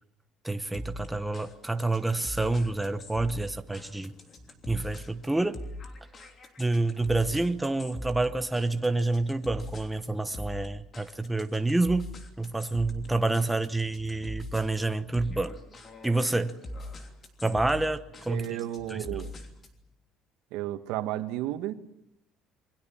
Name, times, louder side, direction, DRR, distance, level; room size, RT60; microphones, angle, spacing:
voice 1, 0.4-4.1 4.7-5.6 6.6-15.6 16.0-16.6 17.4-18.4 18.9-19.0, right 2 dB, 5° right, 8 dB, 0.9 m, -28 dB
sound 1, 0.7-19.8, left 1 dB, 25° left, 3.1 m, -42 dB
voice 2, 18.3-19.3 20.5-21.7, right 14 dB, 90° right, 8 dB, 2.0 m, -33 dB
28.0 x 23.0 x 7.4 m, 0.79 s
cardioid pair, 170°, 0 cm